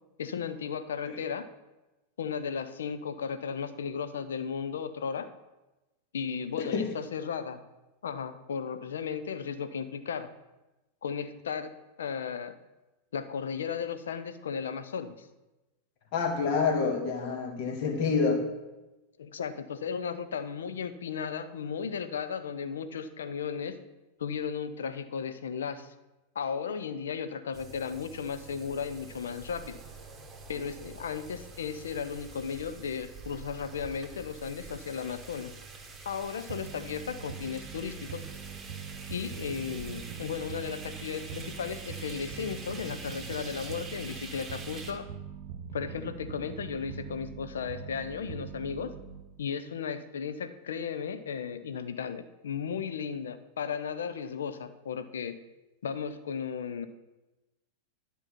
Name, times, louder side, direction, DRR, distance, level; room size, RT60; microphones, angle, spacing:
voice 1, 0.2-1.5 2.2-5.3 6.1-7.6 8.0-10.3 11.0-12.6 13.1-15.3 19.2-23.8 24.2-25.9 26.3-29.8 30.5-35.5 36.0-38.2 39.1-45.1 45.7-48.9 49.4-55.4 55.8-56.9, left 6 dB, 65° left, 11 dB, 0.7 m, -35 dB
voice 2, 16.1-18.4, left 5 dB, 45° left, 3 dB, 1.8 m, -27 dB
sound 1, 27.5-44.9, right 4 dB, 15° right, 1.5 m, -46 dB
sound 2, 36.5-49.4, right 7 dB, 50° right, 1.0 m, -43 dB
11.0 x 5.5 x 6.1 m, 1.1 s
figure-of-eight pair, 90°, 0 cm